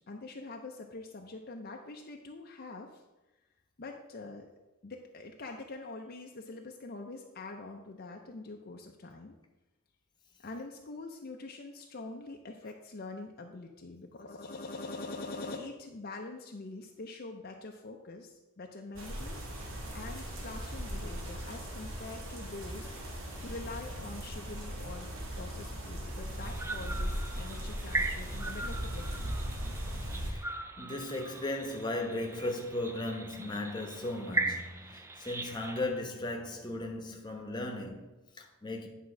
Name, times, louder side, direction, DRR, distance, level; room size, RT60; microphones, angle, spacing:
voice 1, 0.1-3.0 3.8-4.5 4.8-9.4 10.4-19.4 19.9-22.9 23.4-29.2, left 3 dB, 45° left, 0.6 m, -44 dB
sound 1, 18.9-30.3, equal, 60° right, 1.7 m, -38 dB
sound 2, 26.4-35.9, right 3 dB, 10° right, 0.3 m, -39 dB
voice 2, 30.8-38.9, left 2 dB, 20° left, 1.0 m, -36 dB
9.4 x 3.7 x 6.1 m
head